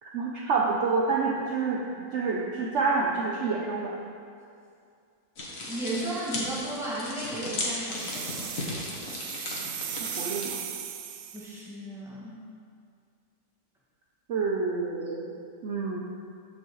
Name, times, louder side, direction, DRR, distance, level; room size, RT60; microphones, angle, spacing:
voice 1, 0.0-4.0 10.0-10.6 14.3-16.0, right 4 dB, 60° right, -2 dB, 0.9 m, -28 dB
sound 1, 5.4-10.5, left 2 dB, 65° left, 1.7 m, -35 dB
voice 2, 5.7-8.5 11.3-12.4, right 1 dB, ahead, -7 dB, 1.6 m, -35 dB
sound 2, 7.9-11.6, right 9 dB, 85° right, 1.1 m, -37 dB
13.5 x 5.4 x 3.1 m, 2.4 s
omnidirectional pair, 1.5 m